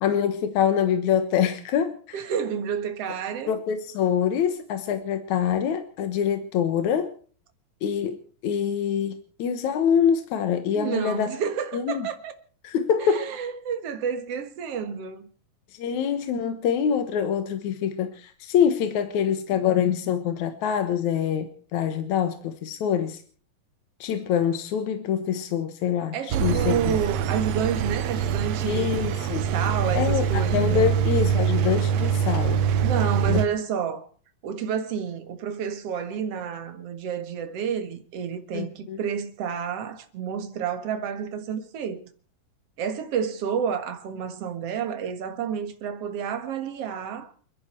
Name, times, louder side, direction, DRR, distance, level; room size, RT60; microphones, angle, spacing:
voice 1, 0.0-2.2 3.5-7.1 7.8-9.1 9.4-11.3 11.7-12.1 12.6-13.3 15.7-23.2 24.0-27.0 28.6-29.5 29.9-32.6 33.3-33.4 38.5-39.0, left 8 dB, 65° left, 2.3 m, -25 dB
voice 2, 2.1-3.6 10.7-12.3 13.1-15.3 26.1-29.0 29.3-30.9 32.8-34.0 34.4-42.1 42.8-47.3, right 7 dB, 50° right, 2.3 m, -30 dB
Engine, 26.3-33.5, right 8 dB, 85° right, 1.4 m, -24 dB
29.0 x 11.0 x 4.5 m
omnidirectional pair, 4.2 m